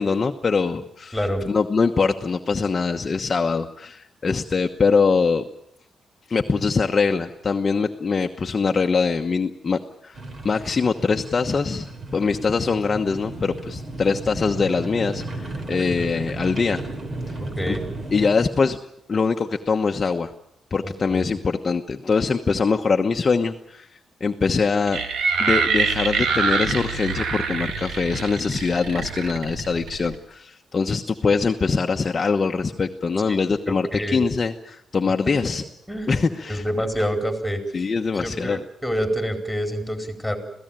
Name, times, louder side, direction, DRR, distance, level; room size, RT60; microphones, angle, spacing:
voice 1, 0.0-1.2 1.4-5.4 6.3-10.2 10.4-16.8 17.3-17.4 17.7-17.8 18.1-18.8 19.1-20.3 20.7-25.0 25.4-35.6 36.1-36.6 37.7-38.6, left 4 dB, 35° left, 4 dB, 1.1 m, -23 dB
voice 2, 1.1-1.4 15.7-16.0 17.6-17.8 20.8-21.4 33.3-33.4 33.7-34.2 35.9-37.6 38.1-40.4, equal, ahead, 5 dB, 4.7 m, -27 dB
sound 1, 10.1-18.4, right 2 dB, 40° right, 3.7 m, -34 dB
sound 2, 24.9-30.2, right 5 dB, 85° right, 2.4 m, -25 dB
27.0 x 17.0 x 9.0 m, 0.74 s
cardioid pair, 130°, 0 cm